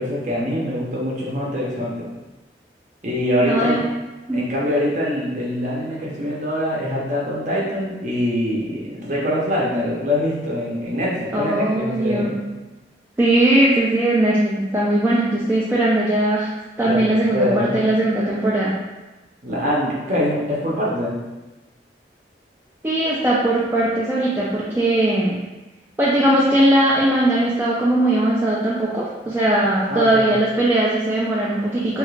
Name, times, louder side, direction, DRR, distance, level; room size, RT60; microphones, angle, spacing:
voice 1, 0.0-2.1 3.0-3.8 4.3-12.3 16.8-17.7 19.4-21.1 29.9-30.3, left 1 dB, 45° right, -5 dB, 0.7 m, -24 dB
voice 2, 3.4-3.8 4.3-4.4 11.3-12.4 13.2-16.5 16.8-18.8 22.8-25.4 26.0-32.0, right 1 dB, 10° right, -7 dB, 0.3 m, -19 dB
3.1 x 2.4 x 3.1 m, 1.1 s
head